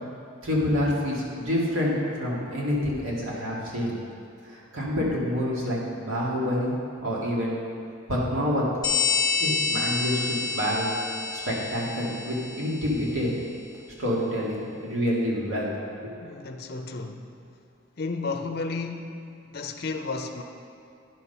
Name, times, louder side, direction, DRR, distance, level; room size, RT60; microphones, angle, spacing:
voice 1, 0.4-4.0 4.4-7.6 8.1-8.6 9.4-10.9 11.5-13.3 14.0-15.7 16.0-16.2, equal, 80° right, -5 dB, 2.1 m, -27 dB
sound 1, 8.8-13.1, left 5 dB, 20° left, 0.9 m, -28 dB
voice 2, 16.2-17.4 18.0-20.4, left 3 dB, 50° left, 5 dB, 0.6 m, -33 dB
10.5 x 6.0 x 5.6 m, 2.5 s
head